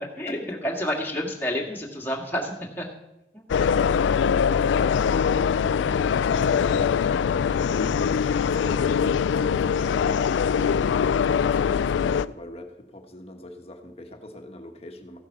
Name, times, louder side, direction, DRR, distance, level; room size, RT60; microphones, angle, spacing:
voice 1, 0.2-2.9 3.3-3.5, equal, 10° left, -2 dB, 1.9 m, -29 dB
sound 1, 3.5-12.3, left 7 dB, 85° left, 0.3 m, -22 dB
voice 2, 3.5-7.0 7.4-15.2, left 1 dB, 35° left, 4 dB, 1.4 m, -42 dB
15.0 x 7.4 x 5.9 m, 0.91 s
head